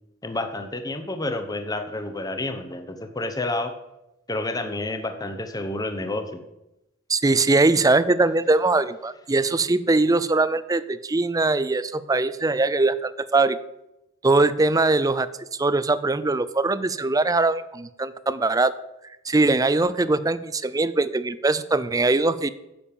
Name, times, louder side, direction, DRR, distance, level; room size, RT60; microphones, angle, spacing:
voice 1, 0.2-3.7 4.3-6.4, left 2 dB, 20° left, 7 dB, 0.9 m, -29 dB
voice 2, 7.1-13.6 14.2-15.3 15.6-18.7 19.2-22.5, right 3 dB, 15° right, 16 dB, 0.4 m, -21 dB
10.5 x 7.2 x 6.8 m, 0.90 s
head